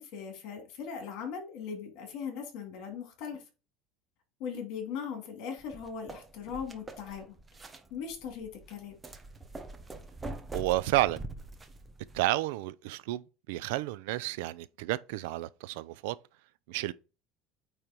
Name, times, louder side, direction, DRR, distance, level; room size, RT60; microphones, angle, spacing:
voice 1, 0.0-3.4 4.4-7.3 7.9-8.9, left 7 dB, 55° left, 2.8 m, -39 dB
sound 1, 5.6-12.2, right 2 dB, 15° right, 0.8 m, -44 dB
voice 2, 10.5-11.2 12.1-13.2 13.5-16.2 16.7-16.9, right 16 dB, 80° right, 0.5 m, -31 dB
9.0 x 3.3 x 4.5 m
cardioid pair, 160°, 0 cm